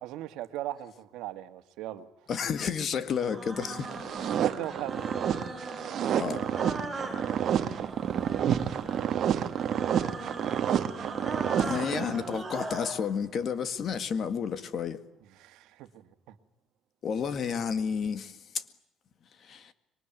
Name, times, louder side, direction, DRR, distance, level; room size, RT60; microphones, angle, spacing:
voice 1, 0.0-2.1 4.4-5.0 9.2-9.4 15.3-16.4, right 14 dB, 70° right, 1.9 m, -38 dB
voice 2, 2.3-4.3 6.2-6.5 11.6-15.0 17.0-18.6 19.4-19.7, left 6 dB, 35° left, 1.9 m, -31 dB
sound 1, 3.1-13.0, right 2 dB, 5° right, 5.4 m, -40 dB
sound 2, 3.8-12.4, right 9 dB, 40° right, 1.6 m, -29 dB
26.5 x 23.5 x 9.1 m
cardioid pair, 165°, 0 cm